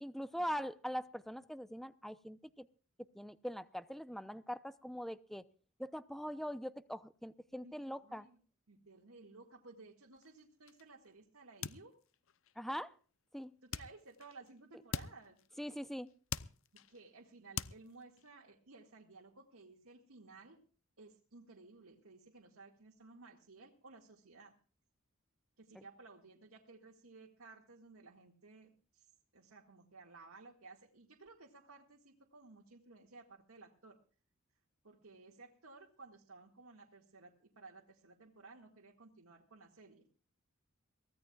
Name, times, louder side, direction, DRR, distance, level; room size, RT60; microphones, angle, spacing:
voice 1, 0.0-2.7 3.1-5.4 5.8-8.3 12.6-12.9 13.3-13.5 15.6-16.1, equal, ahead, 13 dB, 0.7 m, -42 dB
voice 2, 7.6-8.4 8.7-12.0 13.6-15.4 16.9-20.6 21.0-24.6 25.6-34.0 34.8-40.1, right 3 dB, 75° right, 0 dB, 2.0 m, -57 dB
sound 1, 10.1-11.1 11.4-12.6 13.7-14.6 14.9-15.8 16.1-17.1 17.6-18.3, left 7 dB, 65° left, 0.7 m, -45 dB
23.5 x 16.5 x 2.4 m, 0.40 s
head